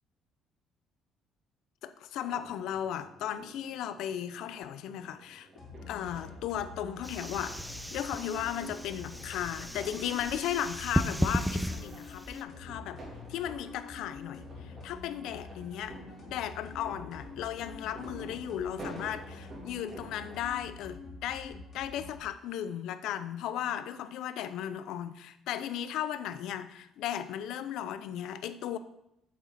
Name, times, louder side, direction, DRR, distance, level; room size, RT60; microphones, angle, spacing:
voice 1, 1.8-5.5 5.9-7.6 7.9-13.0 13.3-16.0 16.3-28.8, left 10 dB, 75° left, 12 dB, 0.5 m, -36 dB
sound 1, 2.2-20.4, right 2 dB, 30° right, 3.1 m, -51 dB
sound 2, 5.6-22.2, left 4 dB, 45° left, 2.3 m, -47 dB
sound 3, 7.0-12.4, equal, 5° right, 0.5 m, -35 dB
8.5 x 7.3 x 4.1 m, 0.83 s
cardioid pair, 135°, 0 cm